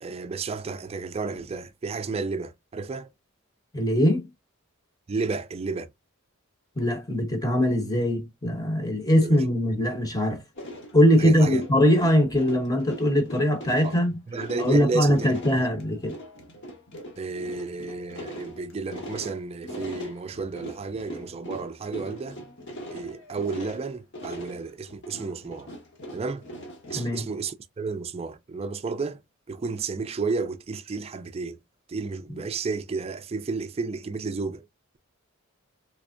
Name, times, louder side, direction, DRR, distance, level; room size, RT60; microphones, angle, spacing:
voice 1, 0.0-3.1 5.1-5.9 9.2-9.4 11.2-11.6 13.8-14.0 14.3-15.3 16.0-16.1 17.2-22.4 22.9-25.7 26.1-26.4 26.9-29.2 29.5-31.6 31.9-34.6, right 4 dB, 30° right, 0.4 m, -32 dB
voice 2, 3.7-4.2 6.8-10.4 10.9-14.1 14.6-16.2 26.9-27.2 32.3-32.4, equal, 15° left, 0.9 m, -22 dB
sound 1, 10.6-27.2, equal, 55° left, 1.0 m, -41 dB
3.4 x 3.2 x 2.5 m
head